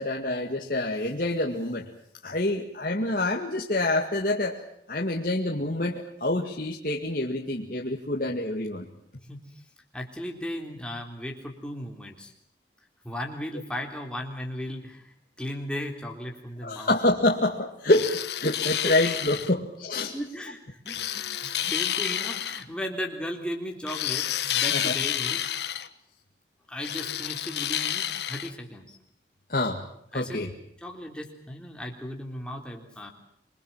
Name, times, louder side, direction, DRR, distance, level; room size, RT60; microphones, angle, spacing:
voice 1, 0.0-1.9 2.2-4.6 4.9-8.9 16.6-20.1 24.7-24.9 29.5-29.8 30.1-30.5, left 2 dB, 50° left, -1 dB, 2.2 m, -27 dB
voice 2, 9.9-12.3 13.0-16.9 18.8-19.2 19.5-19.6 20.1-25.4 26.7-29.0 30.1-30.5 30.8-33.1, left 1 dB, 5° left, 2 dB, 3.5 m, -36 dB
sound 1, 17.9-19.5 20.9-22.6 23.9-25.9 26.8-28.5, left 11 dB, 75° left, 1.3 m, -29 dB
27.5 x 22.5 x 7.4 m, 0.69 s
head